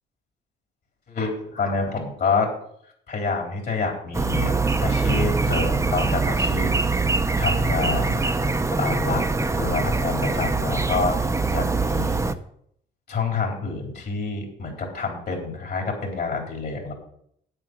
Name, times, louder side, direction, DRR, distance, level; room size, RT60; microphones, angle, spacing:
voice 1, 1.1-2.5 3.1-7.0 7.4-8.3 8.8-9.2 9.5-12.2 13.1-16.9, left 4 dB, 55° left, 1 dB, 3.8 m, -28 dB
sound 1, 4.1-12.3, right 3 dB, 15° right, 0.8 m, -23 dB
8.9 x 8.3 x 6.1 m, 0.68 s
cardioid pair, 90°, 20 cm